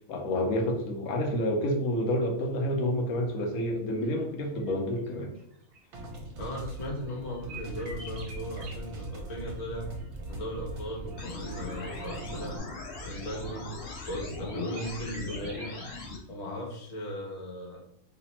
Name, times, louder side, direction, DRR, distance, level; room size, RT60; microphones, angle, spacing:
voice 1, 0.1-5.3, left 1 dB, 90° left, 2 dB, 1.2 m, -29 dB
sound 1, 4.1-4.2 4.6-4.7 5.0-6.2 6.8-8.8 9.5-12.5 13.0-14.5 14.8-15.8, right 2 dB, 50° right, 0.8 m, -48 dB
sound 2, 5.9-12.6, right 2 dB, 75° right, 1.2 m, -40 dB
voice 2, 6.4-9.9 10.3-12.6 13.0-13.7 14.0-15.8 16.3-17.8, equal, 30° left, -2 dB, 1.0 m, -37 dB
sound 3, 11.2-16.2, left 3 dB, 55° left, 0.9 m, -40 dB
3.2 x 2.0 x 4.2 m, 0.76 s
omnidirectional pair, 1.5 m